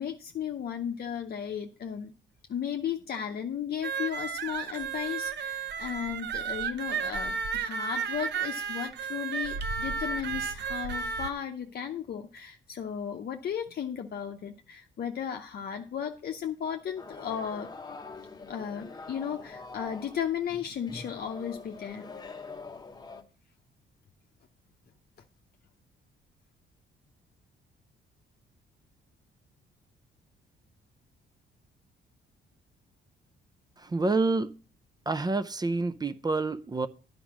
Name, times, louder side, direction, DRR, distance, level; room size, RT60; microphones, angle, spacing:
voice 1, 0.0-2.1 2.5-17.7 18.5-22.0, left 8 dB, 50° left, 0.8 m, -35 dB
sound 1, 3.8-11.3, right 6 dB, 60° right, 0.8 m, -33 dB
sound 2, 17.0-23.2, left 4 dB, 20° left, 1.0 m, -44 dB
voice 2, 33.8-34.5 35.1-36.9, right 3 dB, 20° right, 0.5 m, -28 dB
10.0 x 5.1 x 6.0 m
cardioid pair, 90°, 20 cm